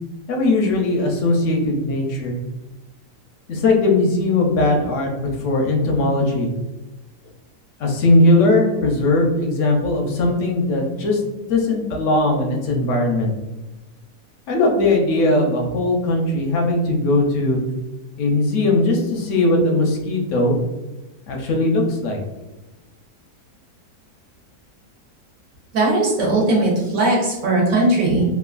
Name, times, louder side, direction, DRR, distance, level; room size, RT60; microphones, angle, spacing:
voice 1, 0.3-2.3 3.5-6.5 7.8-11.2 11.5-13.3 14.5-17.6 18.2-20.6 21.3-22.2, left 2 dB, 65° left, 1 dB, 0.8 m, -19 dB
voice 2, 25.7-28.2, right 2 dB, 60° right, -3 dB, 1.2 m, -18 dB
3.0 x 2.3 x 2.4 m, 1.1 s
omnidirectional pair, 1.7 m